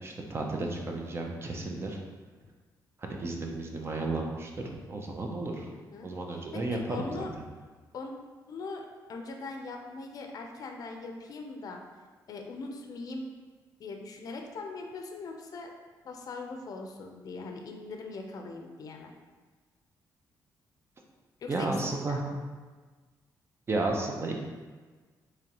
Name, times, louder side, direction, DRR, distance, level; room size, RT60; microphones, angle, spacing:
voice 1, 0.0-2.0 3.0-5.7 6.0-7.2 21.5-22.2 23.7-24.3, right 2 dB, 35° right, 1 dB, 0.6 m, -33 dB
voice 2, 5.7-6.1 6.5-7.3 7.9-8.1 8.5-11.8 12.3-13.3 13.8-15.7 16.0-19.1 21.4-22.4, left 3 dB, 55° left, 3 dB, 0.5 m, -41 dB
3.7 x 3.2 x 2.9 m, 1.4 s
cardioid pair, 105°, 8 cm